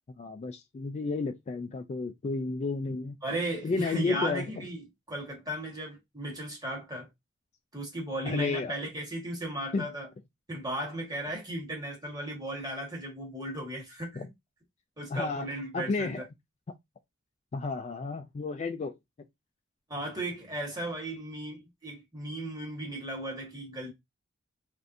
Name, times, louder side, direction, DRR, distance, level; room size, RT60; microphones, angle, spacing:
voice 1, 0.2-3.2 3.6-4.6 8.2-8.8 9.7-9.9 14.2-14.3 15.1-15.5 15.7-16.2 17.5-18.9, left 3 dB, 35° left, 0.3 m, -32 dB
voice 2, 3.2-7.1 7.7-10.1 10.5-14.3 15.0-16.2 19.9-23.9, right 1 dB, 20° right, 1.4 m, -36 dB
3.5 x 2.5 x 2.6 m
head